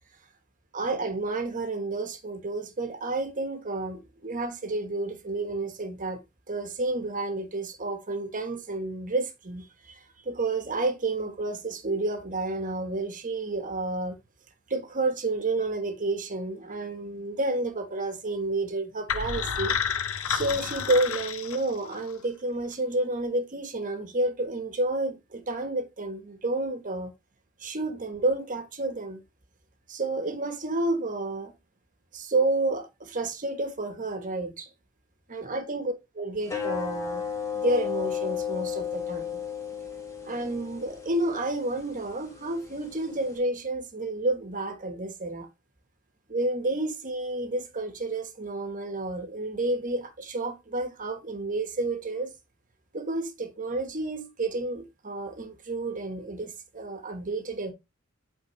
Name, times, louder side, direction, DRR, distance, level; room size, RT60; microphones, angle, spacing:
voice 1, 0.7-6.2 6.5-14.2 14.7-19.8 20.3-27.1 27.6-29.2 29.9-31.5 32.1-34.7 35.3-37.2 37.5-39.4 40.2-45.5 46.3-52.3 52.9-57.7, right 2 dB, 40° right, 1.2 m, -30 dB
sound 1, 19.1-22.1, left 7 dB, 80° left, 0.7 m, -30 dB
sound 2, 36.4-43.4, left 8 dB, 15° left, 1.4 m, -34 dB
8.4 x 3.8 x 3.1 m
head